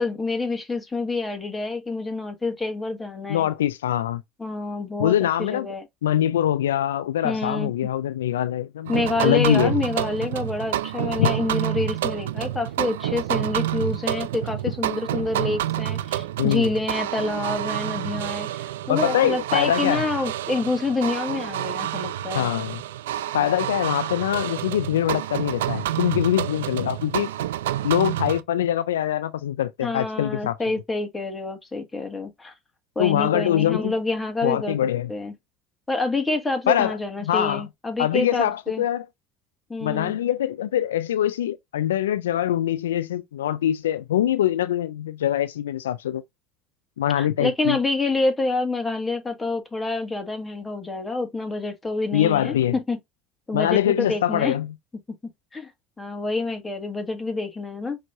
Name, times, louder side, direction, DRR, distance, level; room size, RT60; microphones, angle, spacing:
voice 1, 0.0-3.5 4.4-5.8 7.2-7.7 8.9-22.5 29.8-32.5 32.9-34.8 35.1-35.3 35.9-38.8 39.7-40.2 47.2-53.0 53.5-54.6 55.5-55.7 56.0-58.0, left 3 dB, 15° left, 1.8 m, -27 dB
voice 2, 3.3-4.2 5.0-5.7 6.0-8.9 9.2-9.7 11.2-11.3 16.4-16.7 18.9-20.0 22.3-22.8 23.3-27.3 27.8-30.6 33.0-33.9 34.4-35.1 36.7-37.0 37.2-37.6 38.0-39.1 39.8-46.2 47.0-47.8 52.1-52.8 53.5-54.7, left 11 dB, 85° left, 0.3 m, -23 dB
sound 1, 8.9-28.4, right 12 dB, 80° right, 0.3 m, -28 dB
5.9 x 3.1 x 2.6 m
hypercardioid pair, 70°, 0 cm